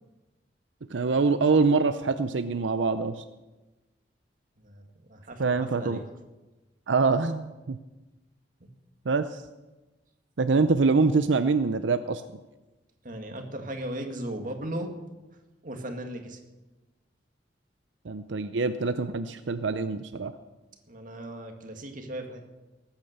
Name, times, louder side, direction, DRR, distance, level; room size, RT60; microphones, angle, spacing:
voice 1, 0.9-3.2 5.4-6.0 6.9-7.8 9.1-9.4 10.4-12.2 18.0-20.3, right 4 dB, 90° right, 10 dB, 0.6 m, -25 dB
voice 2, 4.6-6.0 8.6-8.7 13.0-14.9 15.6-16.4 20.9-22.4, right 1 dB, 45° right, 4 dB, 2.1 m, -37 dB
19.5 x 8.9 x 6.7 m, 1.1 s
head